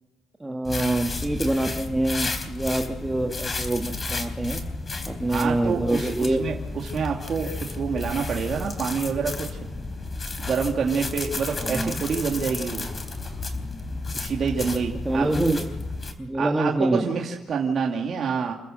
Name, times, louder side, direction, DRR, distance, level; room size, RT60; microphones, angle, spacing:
voice 1, 0.4-4.6 5.1-6.4 11.6-12.0 15.0-15.7 16.2-17.1, right 2 dB, 15° right, 2 dB, 1.8 m, -25 dB
sound 1, 0.6-16.1, left 3 dB, 30° left, 3.6 m, -32 dB
voice 2, 5.3-6.5 6.8-9.6 10.4-12.9 14.1-15.3 16.4-18.5, right 6 dB, 55° right, -1 dB, 2.5 m, -27 dB
29.0 x 14.5 x 6.5 m, 1.1 s
cardioid pair, 90°, 0 cm